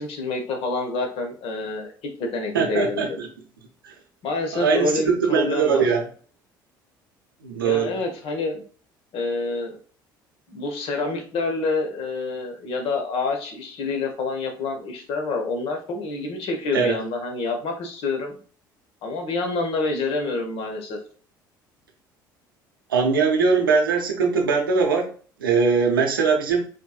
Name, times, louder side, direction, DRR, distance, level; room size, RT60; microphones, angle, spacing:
voice 1, 0.0-1.9 2.2-3.2 4.2-5.9 7.6-8.6 9.1-9.8 10.5-18.3 19.0-21.0, left 3 dB, 55° left, 3 dB, 1.1 m, -27 dB
voice 2, 2.5-3.3 3.8-3.9 4.5-6.0 7.4-7.9 16.7-16.9 22.9-25.1 25.4-26.6, right 5 dB, 85° right, 2 dB, 0.8 m, -21 dB
5.0 x 3.1 x 2.3 m, 0.42 s
figure-of-eight pair, 60°, 11 cm